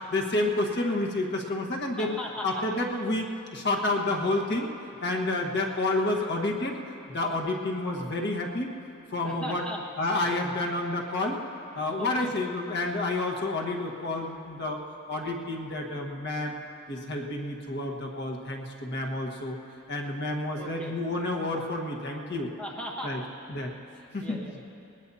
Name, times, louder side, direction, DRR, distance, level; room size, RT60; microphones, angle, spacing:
voice 1, 0.1-2.1 2.4-4.7 5.0-8.7 9.1-9.6 10.0-11.4 11.7-14.8 15.1-16.6 16.9-19.6 19.9-22.5 23.0-23.2 23.5-23.7 24.1-24.4, left 2 dB, 55° left, 0 dB, 1.4 m, -29 dB
voice 2, 2.0-2.5 3.8-4.0 9.2-9.8 10.1-10.2 11.7-12.3 20.5-20.9 22.6-23.3 23.9-24.6, left 1 dB, 5° left, -4 dB, 1.5 m, -39 dB
21.5 x 19.5 x 2.8 m, 3.0 s
head